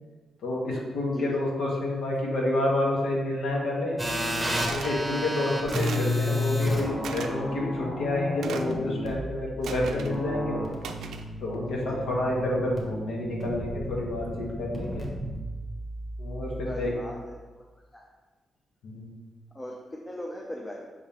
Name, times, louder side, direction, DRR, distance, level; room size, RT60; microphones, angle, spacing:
voice 1, 0.4-4.0 4.7-10.7 11.4-15.1 16.2-16.9 18.8-19.1, left 1 dB, 85° left, -2 dB, 1.4 m, -29 dB
sound 1, 4.0-16.9, left 1 dB, 5° right, 1.1 m, -32 dB
sound 2, 4.5-5.0 5.7-6.1 7.0-7.3 8.4-8.8 9.6-10.1 10.8-11.3, right 5 dB, 80° right, 0.4 m, -37 dB
voice 2, 5.1-5.4 11.7-12.0 16.7-17.6 17.9-18.1 19.5-20.9, left 1 dB, 20° left, -2 dB, 0.6 m, -39 dB
5.8 x 3.8 x 4.3 m, 1.3 s
cardioid pair, 130°, 0 cm